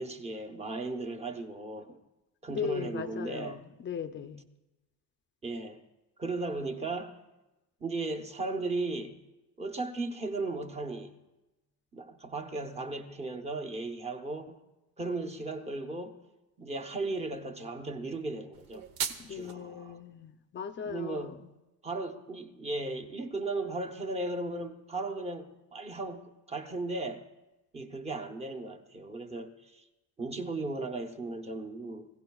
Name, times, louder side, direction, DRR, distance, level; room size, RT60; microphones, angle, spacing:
voice 1, 0.0-2.0 2.4-3.6 5.4-5.8 6.2-7.2 7.8-9.2 9.6-11.1 11.9-14.6 15.0-16.2 16.6-18.9 19.3-20.0 20.8-21.4 21.8-27.3 27.7-29.8 30.2-32.1, right 2 dB, 15° right, 0.8 m, -36 dB
voice 2, 2.5-4.4 19.2-21.5, left 7 dB, 30° left, 0.5 m, -38 dB
sound 1, 18.5-19.5, right 8 dB, 80° right, 1.1 m, -37 dB
26.0 x 16.0 x 2.3 m
cardioid pair, 170°, 36 cm